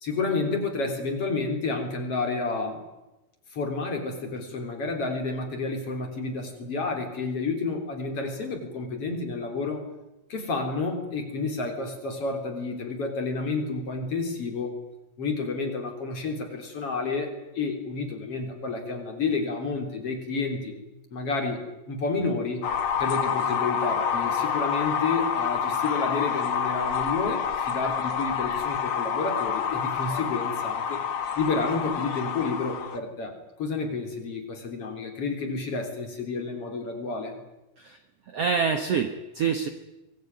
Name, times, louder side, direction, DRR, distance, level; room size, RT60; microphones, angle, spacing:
voice 1, 0.0-2.8 3.5-9.8 10.3-14.7 15.2-20.7 21.1-22.7 23.0-31.0 31.4-37.4, left 3 dB, 35° left, 3 dB, 4.1 m, -30 dB
sound 1, 22.6-33.0, left 7 dB, 85° left, 1.1 m, -28 dB
voice 2, 38.3-39.7, right 6 dB, 80° right, 7 dB, 1.3 m, -26 dB
24.0 x 20.0 x 9.4 m, 1.0 s
omnidirectional pair, 4.8 m